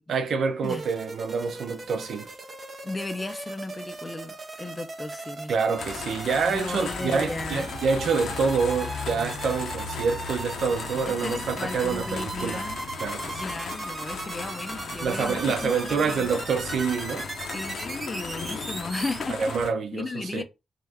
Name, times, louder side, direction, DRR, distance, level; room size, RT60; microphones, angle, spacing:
voice 1, 0.1-2.3 5.5-12.6 13.0-13.4 15.0-17.3 19.3-20.4, right 5 dB, 65° right, 0.7 m, -27 dB
sound 1, 0.6-19.2, right 3 dB, 30° right, 0.6 m, -38 dB
voice 2, 2.8-5.5 6.4-7.7 11.1-12.8 13.4-16.3 17.5-19.5 19.9-20.4, left 3 dB, 20° left, 0.5 m, -35 dB
sound 2, 5.8-19.7, left 5 dB, 75° left, 0.7 m, -36 dB
3.7 x 3.2 x 3.5 m
wide cardioid pair, 155°, 0 cm